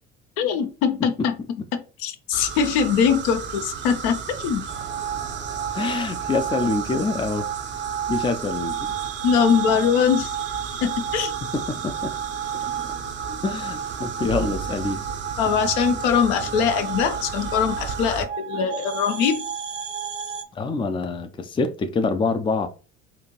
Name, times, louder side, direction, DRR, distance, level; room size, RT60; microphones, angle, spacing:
voice 1, 0.4-1.3 1.7-4.6 9.2-10.3 10.8-11.3 13.3-13.4 15.4-19.4, left 7 dB, 60° left, 0.7 m, -22 dB
sound 1, 2.3-18.2, right 6 dB, 30° right, 0.7 m, -34 dB
sound 2, 4.7-20.4, right 8 dB, 85° right, 0.5 m, -32 dB
voice 2, 5.7-7.5 8.1-9.0 11.5-12.1 13.4-15.1 20.5-22.7, left 3 dB, 15° left, 0.5 m, -25 dB
4.2 x 2.5 x 3.0 m
figure-of-eight pair, 60°, 35 cm